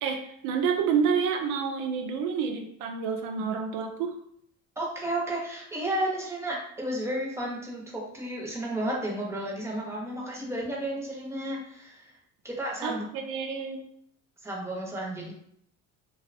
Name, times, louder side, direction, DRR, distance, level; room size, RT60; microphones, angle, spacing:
voice 1, 0.0-4.2 12.8-13.8, right 6 dB, 80° right, 5 dB, 0.5 m, -29 dB
voice 2, 4.8-12.1 12.4-13.1 14.4-15.3, right 1 dB, 10° right, -3 dB, 0.5 m, -32 dB
2.6 x 2.1 x 2.5 m, 0.68 s
cardioid pair, 130°, 31 cm